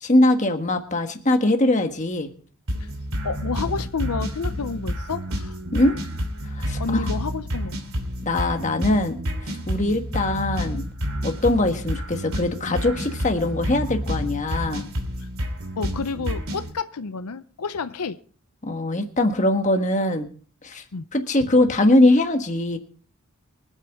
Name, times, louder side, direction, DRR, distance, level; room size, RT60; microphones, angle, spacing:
voice 1, 0.0-2.3 5.7-6.0 6.5-7.1 8.2-10.8 11.2-14.9 18.6-20.3 20.6-20.8 21.1-22.8, left 1 dB, 35° left, 5 dB, 1.5 m, -22 dB
sound 1, 2.7-16.7, equal, 70° right, 2.8 m, -29 dB
voice 2, 3.2-5.6 6.8-7.8 9.8-10.0 15.2-15.3 15.8-18.2 20.9-21.1 21.4-21.5, left 4 dB, 85° left, 11 dB, 0.6 m, -30 dB
24.5 x 8.4 x 3.6 m, 0.43 s
head